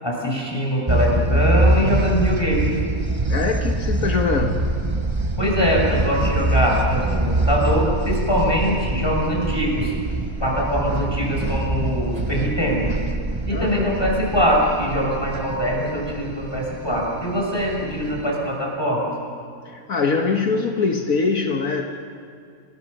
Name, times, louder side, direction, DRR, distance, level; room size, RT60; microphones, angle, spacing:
voice 1, 0.0-2.7 5.4-9.9 10.4-12.9 13.4-19.1, equal, 15° left, -2 dB, 6.5 m, -22 dB
sound 1, 0.9-18.3, right 1 dB, 20° right, 0.9 m, -24 dB
voice 2, 3.3-4.8 13.5-14.0 19.7-21.8, left 4 dB, 70° left, 3 dB, 1.8 m, -23 dB
28.5 x 22.5 x 6.7 m, 2.2 s
omnidirectional pair, 1.5 m